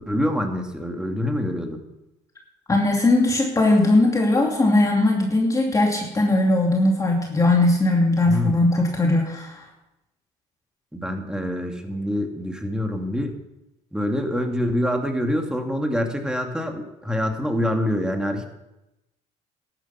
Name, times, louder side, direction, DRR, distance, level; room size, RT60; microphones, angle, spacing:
voice 1, 0.1-1.8 8.3-8.7 10.9-13.3 13.9-18.5, left 1 dB, 5° right, 4 dB, 2.4 m, -25 dB
voice 2, 2.7-9.6, left 2 dB, 20° left, -1 dB, 2.6 m, -19 dB
13.5 x 11.0 x 5.8 m, 0.92 s
supercardioid pair, 80°, 15 cm